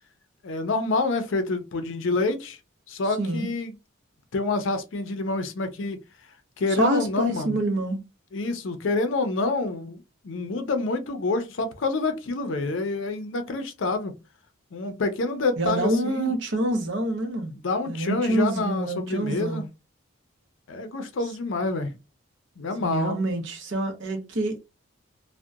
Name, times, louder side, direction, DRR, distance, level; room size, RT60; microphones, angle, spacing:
voice 1, 0.4-2.6 2.9-3.7 4.3-6.0 6.6-7.6 8.3-14.1 14.7-16.3 17.6-19.7 20.7-21.9 22.6-23.2, left 3 dB, 65° left, 0.5 m, -27 dB
voice 2, 6.8-8.0 15.6-17.5 17.9-19.6 22.8-24.6, right 1 dB, 60° right, 0.7 m, -26 dB
2.7 x 2.1 x 2.3 m
head